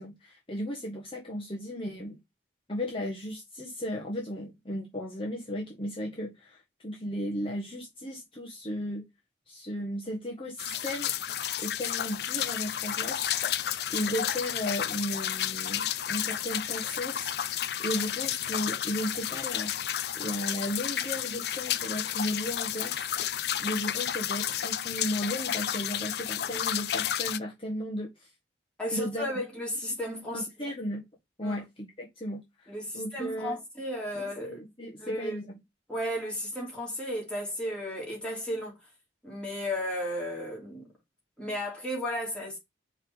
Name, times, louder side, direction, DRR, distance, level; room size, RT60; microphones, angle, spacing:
voice 1, 0.0-2.2 2.7-9.1 9.5-11.1 11.6-13.6 13.9-23.1 23.6-28.3 28.9-29.3 30.3-31.1 31.4-33.6 34.1-35.6, equal, 30° left, 1.6 m, -35 dB
sound 1, 10.6-27.4, left 10 dB, 60° left, 0.4 m, -31 dB
voice 2, 28.8-30.5 31.4-31.5 32.7-34.6 35.0-35.4 35.9-38.8 39.2-40.9 41.4-42.6, equal, 5° left, 2.8 m, -34 dB
5.6 x 3.7 x 5.6 m
head